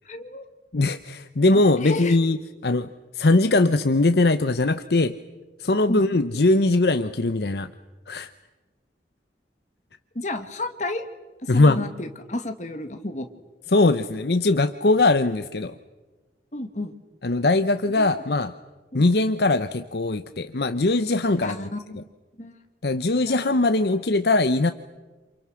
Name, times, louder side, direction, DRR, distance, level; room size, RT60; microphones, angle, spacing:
voice 1, 0.1-0.5 1.5-2.2 5.9-6.0 10.2-11.0 11.4-13.3 16.5-16.9 18.0-18.2 18.9-19.0 21.4-22.0 22.4-22.5 23.2-23.4, left 2 dB, 45° left, 6 dB, 2.0 m, -32 dB
voice 2, 0.7-2.4 2.6-2.9 3.1-5.1 5.6-7.7 8.1-8.3 11.5-11.8 13.7-15.7 17.2-18.5 18.9-21.6 22.8-24.7, left 2 dB, 65° left, 10 dB, 0.8 m, -21 dB
28.5 x 28.0 x 6.4 m, 1.3 s
head